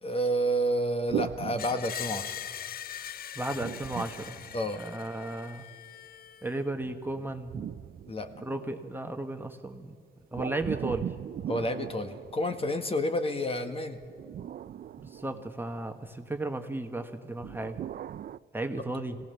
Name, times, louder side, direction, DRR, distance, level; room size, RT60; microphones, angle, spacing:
voice 1, 0.0-2.3 4.5-4.8 8.1-8.3 11.5-14.0, equal, 30° left, 7 dB, 1.7 m, -29 dB
sound 1, 1.1-2.5 3.5-5.1 6.8-8.8 10.3-12.9 14.0-15.9 17.4-18.4, right 10 dB, 50° right, 0.4 m, -39 dB
Screech, 1.6-6.5, left 10 dB, 50° left, 0.5 m, -41 dB
voice 2, 3.4-4.4 4.8-5.7 6.4-7.7 8.4-9.9 10.3-11.1 15.0-17.8 18.5-19.2, right 2 dB, 10° right, 5 dB, 1.3 m, -34 dB
22.0 x 17.0 x 7.0 m, 2.2 s
cardioid pair, 90°, 20 cm